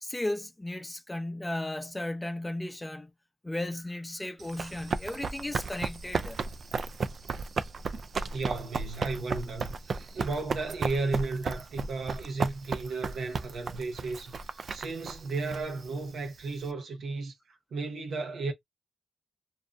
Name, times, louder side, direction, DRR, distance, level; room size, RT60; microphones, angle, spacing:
voice 1, 0.0-3.1 3.4-6.4, left 1 dB, 20° left, 0.5 m, -35 dB
Run, 4.4-16.7, right 4 dB, 65° right, 0.3 m, -34 dB
voice 2, 8.3-14.4 14.7-17.3 17.7-18.5, right 3 dB, 80° right, 0.7 m, -34 dB
2.6 x 2.1 x 2.4 m
supercardioid pair, 50°, 0 cm